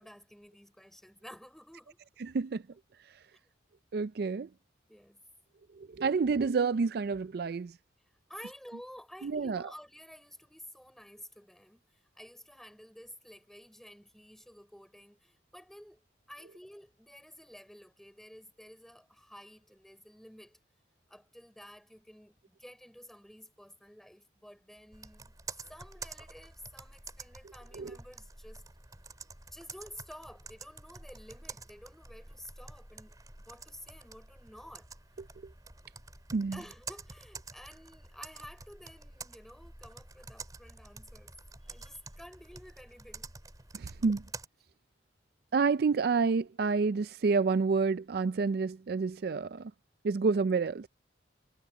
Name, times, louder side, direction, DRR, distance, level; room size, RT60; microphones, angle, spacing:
voice 1, 0.0-2.0 4.9-5.2 8.3-11.8 12.1-16.0 16.3-20.6 21.1-28.6 29.5-33.2 33.5-34.9 36.5-41.3 41.6-43.3, equal, ahead, 3.8 m, -52 dB
voice 2, 3.9-4.5 5.8-7.7 9.2-9.6 27.7-28.0 36.3-36.6 43.7-44.2 45.5-49.7 50.0-50.9, right 4 dB, 55° right, 0.4 m, -29 dB
Computer keyboard, 24.9-44.5, right 3 dB, 20° right, 3.7 m, -48 dB
head